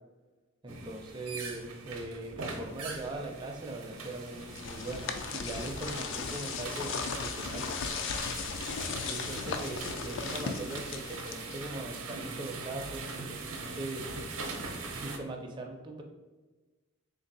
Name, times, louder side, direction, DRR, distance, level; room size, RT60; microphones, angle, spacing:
voice 1, 0.6-7.7 9.0-14.0 14.9-16.0, right 2 dB, 20° right, 1 dB, 0.4 m, -40 dB
sound 1, 0.7-15.2, right 3 dB, 75° right, 0.6 m, -42 dB
sound 2, 4.1-11.9, left 5 dB, 55° left, 0.3 m, -37 dB
3.5 x 2.6 x 3.9 m, 1.3 s
head